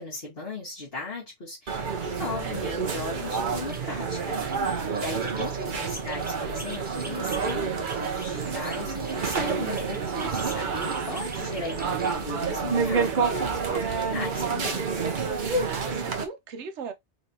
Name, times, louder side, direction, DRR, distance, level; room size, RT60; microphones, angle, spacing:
voice 1, 0.0-14.9, left 2 dB, 55° left, 1.9 m, -37 dB
sound 1, 1.7-16.2, right 5 dB, 50° right, 0.9 m, -29 dB
sound 2, 3.7-12.2, right 2 dB, 10° right, 0.5 m, -45 dB
voice 2, 5.5-6.0 15.6-16.9, right 5 dB, 75° right, 1.1 m, -38 dB
4.1 x 3.4 x 2.8 m
omnidirectional pair, 1.2 m